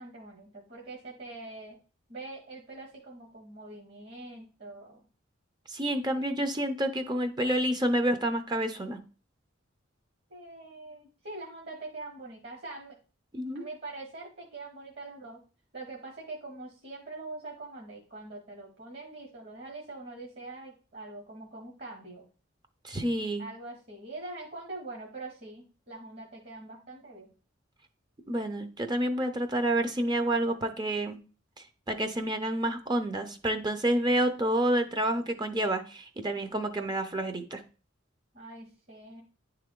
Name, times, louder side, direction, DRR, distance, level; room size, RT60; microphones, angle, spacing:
voice 1, 0.0-1.8 2.1-5.1 6.1-6.3 10.3-13.0 13.5-15.4 15.7-22.3 23.4-27.3 38.3-39.2, right 2 dB, 50° right, 0 dB, 1.3 m, -43 dB
voice 2, 5.7-9.0 13.3-13.7 22.8-23.4 28.3-31.2 31.9-37.6, right 1 dB, 20° right, 7 dB, 0.6 m, -29 dB
10.0 x 3.4 x 3.7 m, 0.37 s
head